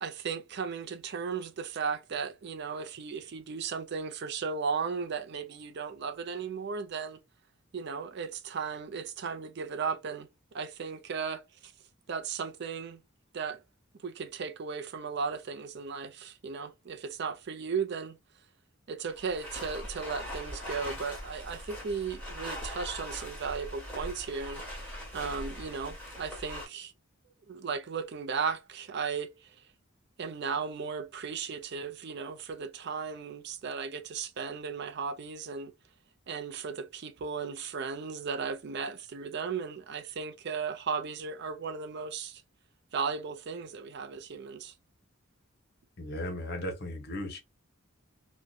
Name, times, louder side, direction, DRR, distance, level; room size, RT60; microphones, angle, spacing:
voice 1, 0.0-7.2 7.7-11.7 12.1-13.0 13.3-13.6 14.0-18.2 18.9-26.9 27.5-29.6 30.2-35.7 36.3-42.4 42.9-44.7, right 5 dB, 55° right, 0.4 m, -36 dB
sound 1, 19.1-26.7, left 1 dB, 5° left, 1.3 m, -41 dB
voice 2, 46.0-47.4, left 1 dB, 50° left, 0.8 m, -36 dB
2.6 x 2.2 x 2.3 m
head